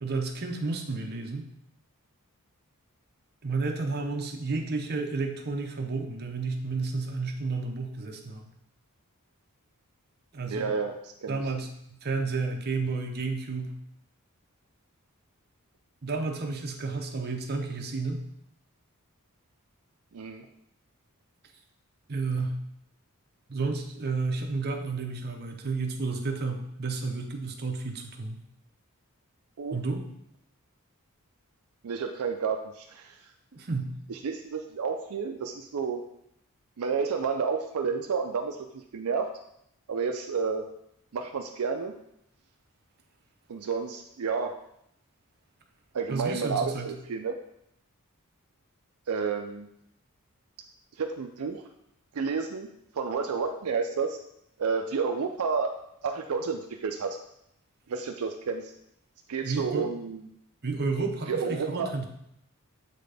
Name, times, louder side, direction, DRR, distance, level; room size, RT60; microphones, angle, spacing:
voice 1, 0.0-1.5 3.4-8.5 10.3-10.7 11.3-13.8 16.0-18.2 22.1-22.6 23.5-28.4 29.7-30.1 33.5-34.0 46.1-46.9 59.4-59.9 60.6-62.0, right 3 dB, 45° right, 3 dB, 0.7 m, -31 dB
voice 2, 10.5-11.4 20.1-20.5 29.6-29.8 31.8-33.2 34.1-36.0 36.8-39.3 39.9-40.6 41.1-41.9 43.5-44.5 45.9-47.3 49.1-49.7 51.0-51.6 52.1-52.7 52.9-54.2 54.6-55.7 56.0-57.2 57.9-58.7 59.3-60.2 61.3-61.9, right 5 dB, 75° right, 4 dB, 0.4 m, -30 dB
7.4 x 4.0 x 3.4 m, 0.78 s
head